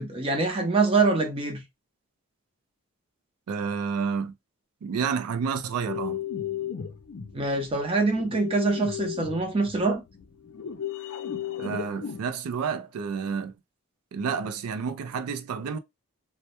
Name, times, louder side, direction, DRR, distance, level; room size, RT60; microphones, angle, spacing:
voice 1, 0.0-1.6 7.3-10.0, right 3 dB, 25° right, 0.5 m, -24 dB
voice 2, 3.5-4.3 4.8-6.2 11.6-13.5 14.1-15.8, right 6 dB, 90° right, 0.4 m, -30 dB
sound 1, 5.9-12.2, left 9 dB, 60° left, 0.4 m, -35 dB
2.1 x 2.1 x 2.8 m
head